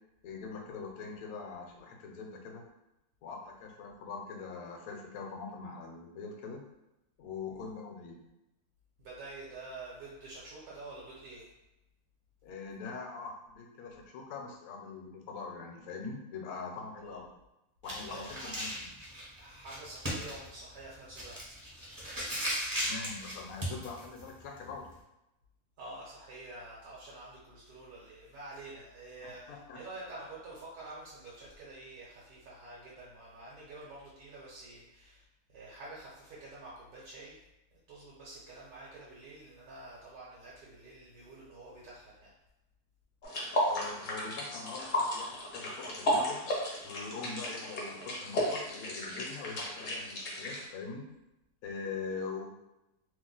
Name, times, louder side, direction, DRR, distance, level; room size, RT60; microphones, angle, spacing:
voice 1, 0.2-2.6 3.2-6.6 7.2-8.2 12.4-17.3 17.8-18.9 22.7-24.9 29.2-29.8 43.7-46.4 46.8-51.0 51.6-52.5, left 4 dB, 70° left, 1 dB, 1.0 m, -43 dB
voice 2, 9.0-11.5 17.0-17.2 18.0-18.5 19.4-21.4 25.8-35.2 35.5-37.4 37.9-42.3, right 2 dB, 75° right, -5 dB, 1.2 m, -48 dB
sound 1, 17.8-25.0, equal, 25° right, 0.4 m, -38 dB
sound 2, 43.2-50.7, equal, 45° left, 0.6 m, -34 dB
2.9 x 2.0 x 3.8 m, 0.91 s
omnidirectional pair, 1.6 m